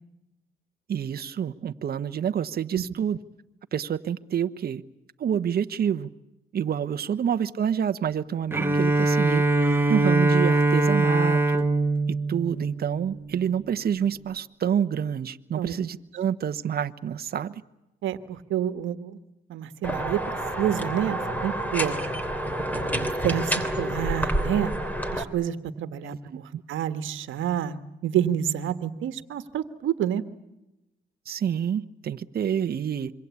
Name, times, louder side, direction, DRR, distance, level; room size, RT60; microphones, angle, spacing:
voice 1, 0.9-3.2 3.7-4.8 5.2-6.1 6.5-9.4 9.9-11.6 12.1-17.6 26.0-26.6 31.3-33.1, right 8 dB, 50° right, 10 dB, 1.1 m, -28 dB
Bowed string instrument, 8.5-13.5, right 2 dB, 10° right, 1.9 m, -22 dB
voice 2, 18.0-19.2 19.5-20.2 20.6-22.0 22.7-24.7 25.1-27.8 28.0-30.2, right 10 dB, 80° right, 11 dB, 1.5 m, -28 dB
sound 1, 19.8-25.2, right 1 dB, 10° left, 3.1 m, -28 dB
26.5 x 23.5 x 8.4 m, 0.91 s
cardioid pair, 90°, 20 cm